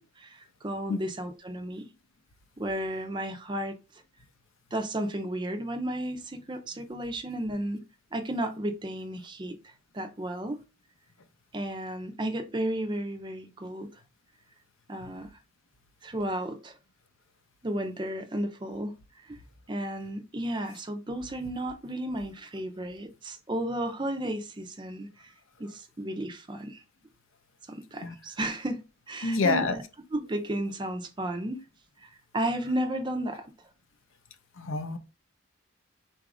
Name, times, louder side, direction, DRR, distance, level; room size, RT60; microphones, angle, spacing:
voice 1, 0.0-1.9 2.6-3.8 4.7-7.9 8.1-10.6 11.5-13.9 14.9-15.3 16.0-16.7 17.6-19.0 19.2-19.4 19.7-25.3 25.6-26.8 27.7-29.8 30.1-31.6 32.0-33.5, right 1 dB, 20° right, 0.5 m, -33 dB
voice 2, 29.2-29.7 34.6-35.0, left 3 dB, 65° left, 0.6 m, -27 dB
3.9 x 2.5 x 4.7 m
head